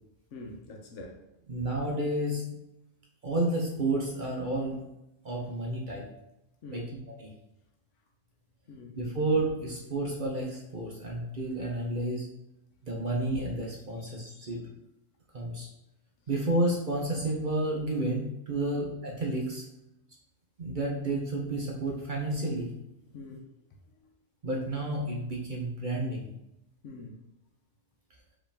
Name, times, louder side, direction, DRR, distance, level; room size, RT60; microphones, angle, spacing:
voice 1, 0.3-1.2 6.6-6.9 8.7-9.0 13.9-14.5 18.7-18.8 23.1-23.5 26.8-27.2, left 3 dB, 70° left, 2 dB, 1.0 m, -45 dB
voice 2, 1.5-2.4 3.2-4.8 5.2-6.0 6.7-6.8 7.2-7.3 9.0-12.3 12.8-14.6 15.3-15.7 16.3-19.6 20.6-22.7 24.4-26.3, right 2 dB, 45° right, -1 dB, 0.8 m, -31 dB
4.8 x 3.2 x 3.3 m, 0.88 s
omnidirectional pair, 1.3 m